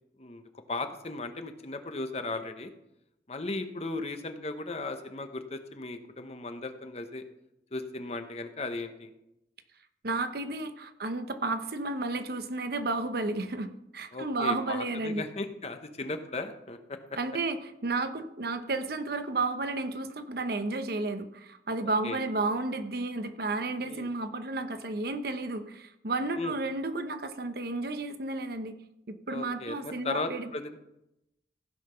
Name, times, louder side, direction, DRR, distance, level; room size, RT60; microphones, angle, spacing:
voice 1, 0.2-2.7 3.3-7.2 7.7-9.1 14.1-17.2 22.0-22.2 23.8-24.1 26.4-26.6 29.3-30.8, left 2 dB, 35° left, 8 dB, 0.9 m, -36 dB
voice 2, 10.0-15.2 17.2-28.8 29.1-30.5, right 3 dB, 60° right, 9 dB, 0.9 m, -32 dB
15.5 x 5.8 x 5.7 m, 0.85 s
head